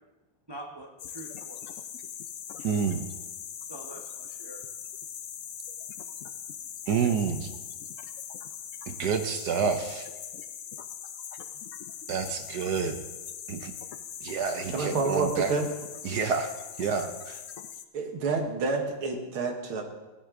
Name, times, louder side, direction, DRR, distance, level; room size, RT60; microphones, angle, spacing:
voice 1, 0.5-1.8 3.7-4.6, right 1 dB, 25° right, 0 dB, 0.5 m, -45 dB
sound 1, 1.0-17.9, left 9 dB, 90° left, 0.6 m, -41 dB
voice 2, 2.6-3.0 6.9-7.5 8.9-10.1 12.1-13.0 13.5-13.7 14.2-15.5 16.0-17.4, right 6 dB, 65° right, 7 dB, 1.2 m, -29 dB
voice 3, 14.7-15.7 17.9-19.8, right 4 dB, 90° right, 3 dB, 2.3 m, -28 dB
16.0 x 10.5 x 3.7 m, 1.1 s
omnidirectional pair, 2.2 m